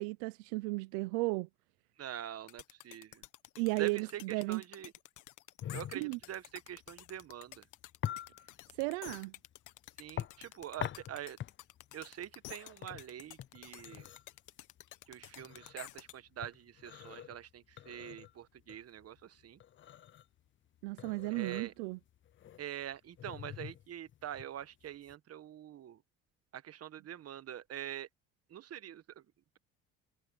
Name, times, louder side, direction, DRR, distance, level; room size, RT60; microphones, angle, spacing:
voice 1, 0.0-1.5 3.6-4.6 5.9-6.2 8.8-9.3 20.8-22.0, right 25 dB, 85° right, 0.7 m, -34 dB
voice 2, 2.0-3.2 3.8-4.9 5.7-7.6 10.0-11.4 11.9-14.1 15.1-19.6 21.3-21.7 22.6-26.0 26.5-28.1 28.5-29.2, right 11 dB, 45° right, 1.4 m, -45 dB
sound 1, 2.5-16.1, left 16 dB, 65° left, 1.6 m, -51 dB
sound 2, 5.6-25.1, left 11 dB, 35° left, 0.6 m, -46 dB
supercardioid pair, 80°, 33 cm